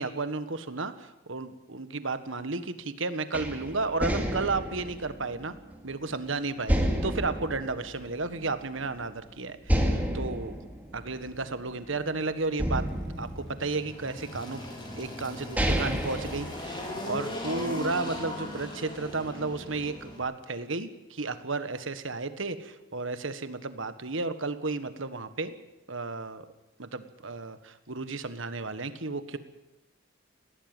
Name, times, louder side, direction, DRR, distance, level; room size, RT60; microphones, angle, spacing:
voice 1, 0.0-5.5 5.8-10.5 10.9-12.8 13.2-14.6 14.9-25.6 25.9-26.4 26.8-29.4, right 3 dB, 70° right, 11 dB, 1.6 m, -33 dB
sound 1, 3.3-6.1 6.7-8.6 9.0-9.1 9.6-12.0 12.6-14.2 14.9-15.0 15.4-17.2, equal, 10° right, 2.5 m, -30 dB
Engine, 12.8-20.2, left 1 dB, 25° left, 4.6 m, -39 dB
19.0 x 17.5 x 9.1 m, 0.95 s
head